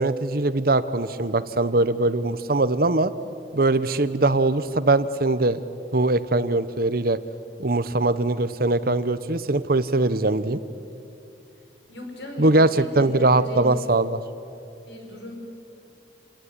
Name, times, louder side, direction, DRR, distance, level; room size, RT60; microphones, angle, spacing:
voice 1, 0.0-3.1 3.5-5.6 5.9-7.2 7.6-10.6 12.4-14.2, right 2 dB, 55° right, 14 dB, 1.0 m, -21 dB
voice 2, 11.9-13.8 14.9-15.4, equal, 85° left, 2 dB, 6.1 m, -36 dB
28.0 x 19.0 x 9.8 m, 2.7 s
head